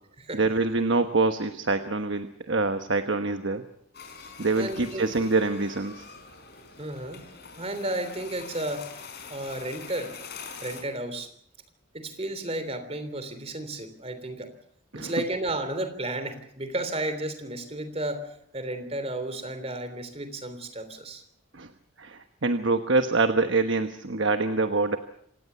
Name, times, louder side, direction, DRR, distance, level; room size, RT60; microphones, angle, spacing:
voice 1, 0.3-3.6 4.4-6.1 14.9-15.1 21.5-21.7 22.0-25.0, right 3 dB, 65° right, 8 dB, 1.2 m, -25 dB
sound 1, 3.9-10.8, left 5 dB, 50° left, 5.1 m, -44 dB
voice 2, 4.5-5.1 6.8-7.2 7.6-8.9 9.3-10.1 10.6-11.3 11.9-14.5 14.9-21.2, right 1 dB, 30° right, 10 dB, 3.3 m, -33 dB
27.5 x 18.0 x 6.9 m, 0.69 s
head